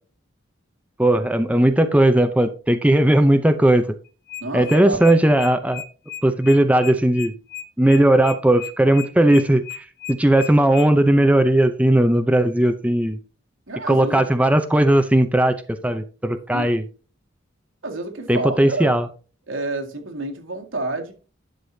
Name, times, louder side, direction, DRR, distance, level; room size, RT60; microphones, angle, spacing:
voice 1, 1.0-3.9 4.5-5.8 6.2-7.3 7.8-13.2 13.9-15.5 15.8-16.8 18.3-19.1, right 1 dB, 5° right, 0.6 m, -17 dB
sound 1, 4.1-10.9, left 9 dB, 50° left, 0.6 m, -35 dB
voice 2, 4.4-5.1 13.7-14.2 16.5-16.7 17.8-19.0 19.5-21.1, right 2 dB, 85° right, 2.1 m, -29 dB
11.5 x 6.8 x 2.7 m
head